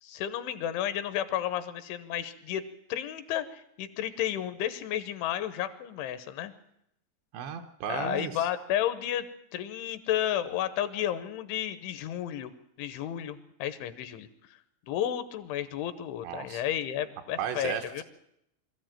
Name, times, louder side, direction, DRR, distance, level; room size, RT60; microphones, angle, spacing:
voice 1, 0.0-2.6 2.9-6.5 7.9-9.3 9.5-12.5 12.8-14.3 14.9-18.0, left 11 dB, 75° left, 12 dB, 3.2 m, -32 dB
voice 2, 7.3-8.5 16.2-16.6 17.4-18.0, right 8 dB, 70° right, 6 dB, 3.0 m, -35 dB
22.5 x 14.0 x 9.0 m, 0.77 s
omnidirectional pair, 5.7 m